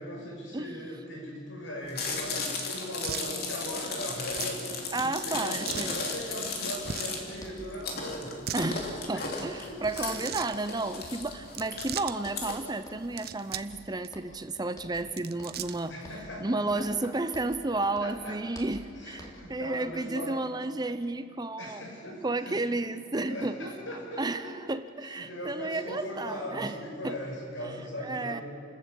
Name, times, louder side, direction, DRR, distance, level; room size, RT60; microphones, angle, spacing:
voice 1, 0.0-8.4 9.1-9.3 9.7-10.2 15.9-17.1 18.0-18.4 18.9-20.4 21.6-22.6 23.2-24.5 25.0-28.4, equal, 70° left, -1 dB, 6.5 m, -39 dB
Chewing mastication, 1.9-12.5, left 4 dB, 50° left, 3.3 m, -35 dB
sound 1, 3.0-3.3 4.3-4.6 5.7-5.9 6.8-7.2 8.3-8.7 9.9-10.6 11.4-12.2 13.0-13.7 14.0-14.1 15.0-15.9, right 9 dB, 50° right, 0.8 m, -38 dB
voice 2, 4.9-5.9 8.5-15.9 16.4-21.8 22.2-23.7 24.2-26.7 27.0-27.1 28.0-28.4, right 2 dB, 20° right, 11 dB, 0.7 m, -32 dB
sound 2, 7.4-8.3 8.6-9.6 9.8-10.8 11.0-11.9 12.2-12.5 12.9-13.2 13.5-14.4 14.8-15.1 15.4-15.7 16.0-17.7 17.9-19.6, equal, 20° left, 3.2 m, -49 dB
29.5 x 14.0 x 8.6 m, 2.3 s
head